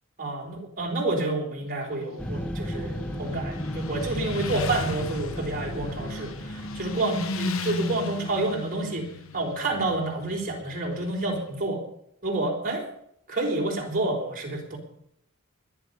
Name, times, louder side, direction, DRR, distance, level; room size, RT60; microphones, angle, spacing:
voice 1, 0.2-9.1 9.3-11.8 12.2-12.8 13.3-14.8, right 2 dB, 40° right, 1 dB, 4.0 m, -29 dB
Motorcycle, 1.6-11.4, left 3 dB, 75° left, 1.0 m, -36 dB
sound 1, 2.2-7.4, equal, 5° left, 0.7 m, -35 dB
21.5 x 10.0 x 5.5 m, 0.72 s
head